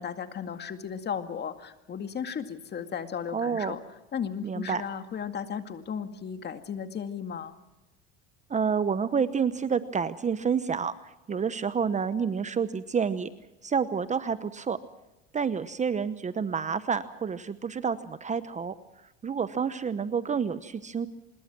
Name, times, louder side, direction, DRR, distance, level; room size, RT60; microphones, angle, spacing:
voice 1, 0.0-3.8 4.1-7.5, left 7 dB, 35° left, 8 dB, 2.2 m, -35 dB
voice 2, 3.3-3.7 4.4-4.8 8.5-10.9 11.3-13.3 13.6-14.8 15.3-18.7 19.2-21.1, right 6 dB, 25° right, 13 dB, 0.9 m, -29 dB
25.0 x 21.5 x 6.1 m, 0.98 s
supercardioid pair, 105°, 31 cm